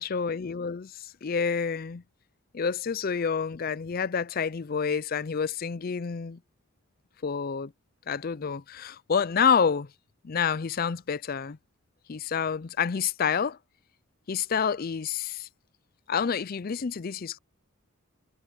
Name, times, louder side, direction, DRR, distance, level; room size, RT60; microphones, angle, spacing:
voice 1, 0.0-2.0 2.5-6.4 7.2-7.7 8.1-9.9 10.2-11.6 12.1-13.6 14.3-15.5 16.1-17.4, left 6 dB, 45° left, 0.4 m, -28 dB
head